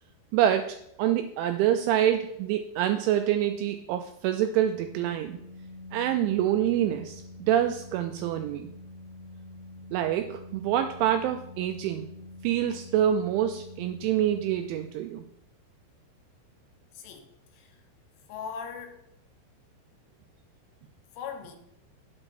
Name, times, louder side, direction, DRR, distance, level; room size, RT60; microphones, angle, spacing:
voice 1, 0.3-5.4 5.9-8.7 9.9-12.1 12.4-15.2, right 11 dB, 85° right, 7 dB, 2.7 m, -26 dB
Organ, 4.5-15.3, left 2 dB, 55° left, 2.3 m, -46 dB
voice 2, 16.9-17.8 18.3-19.0 21.1-21.6, left 6 dB, 75° left, 5 dB, 3.4 m, -40 dB
9.7 x 8.8 x 4.3 m, 0.79 s
omnidirectional pair, 6.0 m